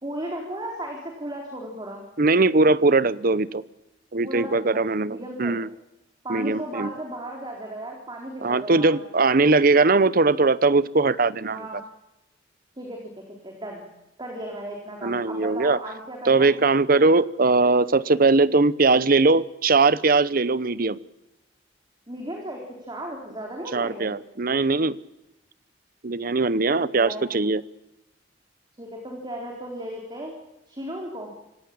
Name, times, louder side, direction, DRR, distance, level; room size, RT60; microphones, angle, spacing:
voice 1, 0.0-2.0 4.2-5.6 6.2-9.4 11.5-11.8 12.8-13.1 13.4-13.9 14.2-16.5 22.1-24.1 26.7-27.3 28.8-30.3 30.7-31.3, right 1 dB, 25° right, 0 dB, 3.9 m, -35 dB
voice 2, 2.2-3.6 4.1-5.7 6.3-6.9 8.4-11.6 15.0-15.8 16.3-21.0 23.7-25.0 26.0-27.6, right 3 dB, 50° right, 18 dB, 0.8 m, -20 dB
26.5 x 16.5 x 8.7 m, 0.95 s
head